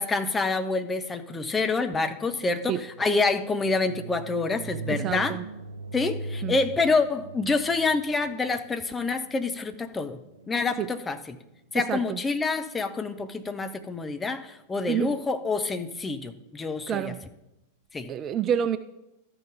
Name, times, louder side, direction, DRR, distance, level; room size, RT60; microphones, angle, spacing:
voice 1, 0.0-5.4 5.9-10.2 10.5-11.4 11.7-17.1 17.9-18.1, left 3 dB, 15° left, 0.7 m, -27 dB
sound 1, 1.4-11.3, right 3 dB, 80° right, 0.7 m, -41 dB
voice 2, 4.9-5.5 6.4-6.6 10.8-10.9 11.8-12.2 14.9-15.2 16.9-17.2 18.1-18.8, right 9 dB, 30° right, 0.3 m, -28 dB
13.5 x 5.3 x 3.6 m
figure-of-eight pair, 90°, 0 cm